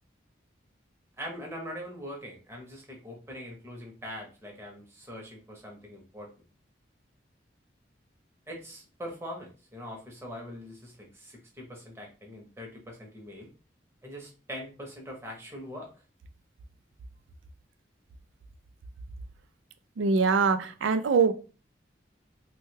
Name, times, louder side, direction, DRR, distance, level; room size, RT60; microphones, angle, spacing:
voice 1, 1.2-6.3 8.5-13.5 14.0-15.9, equal, 15° right, 0.8 m, -42 dB
voice 2, 20.0-21.3, right 5 dB, 90° right, 0.4 m, -23 dB
3.1 x 2.2 x 3.2 m
head